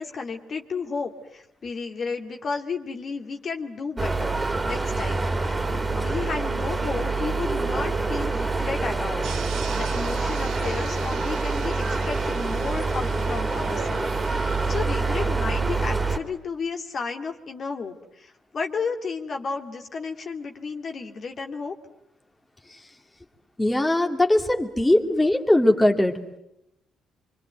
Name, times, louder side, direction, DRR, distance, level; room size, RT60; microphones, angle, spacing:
voice 1, 0.0-4.4 4.6-21.7, left 4 dB, 50° left, 4 dB, 2.3 m, -33 dB
sound 1, 4.0-16.2, right 3 dB, 20° right, 2.9 m, -26 dB
sound 2, 9.2-14.8, right 10 dB, 85° right, 1.1 m, -40 dB
voice 2, 23.6-26.4, left 1 dB, 10° left, 3 dB, 2.5 m, -20 dB
26.0 x 24.5 x 9.3 m, 0.81 s
cardioid pair, 90°, 0 cm